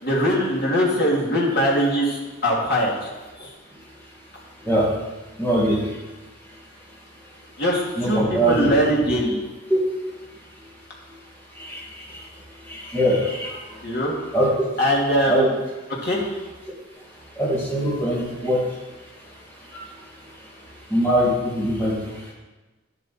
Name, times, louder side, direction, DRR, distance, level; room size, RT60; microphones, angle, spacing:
voice 1, 0.0-3.1 3.4-3.5 7.6-9.4 13.8-14.1 14.8-15.5 16.0-16.2, equal, 50° left, -4 dB, 2.6 m, -21 dB
voice 2, 5.4-6.0 8.0-8.7 9.7-9.8 11.5-12.3 12.5-13.9 14.3-14.7 15.3-15.5 16.7-16.8 17.3-18.8 19.7-19.8 20.2-22.3, right 1 dB, 10° left, -5 dB, 2.5 m, -23 dB
11.5 x 8.1 x 4.4 m, 1.2 s
head